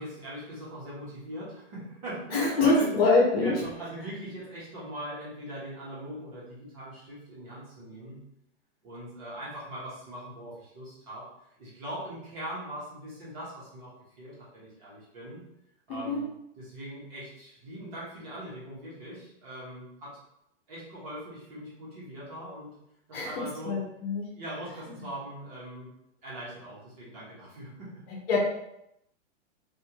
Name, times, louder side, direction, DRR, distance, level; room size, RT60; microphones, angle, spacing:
voice 1, 0.0-3.1 3.4-8.2 8.8-11.3 11.6-15.4 15.9-16.2 16.6-20.2 20.7-22.8 23.1-23.8 24.3-25.9 26.2-28.1, equal, 30° right, -8 dB, 1.4 m, -40 dB
voice 2, 2.3-3.5 16.1-16.2 23.1-23.3 23.6-24.2 28.3-28.4, left 3 dB, 50° left, -2 dB, 1.1 m, -24 dB
3.2 x 2.8 x 2.9 m, 0.80 s
hypercardioid pair, 170°, 37 cm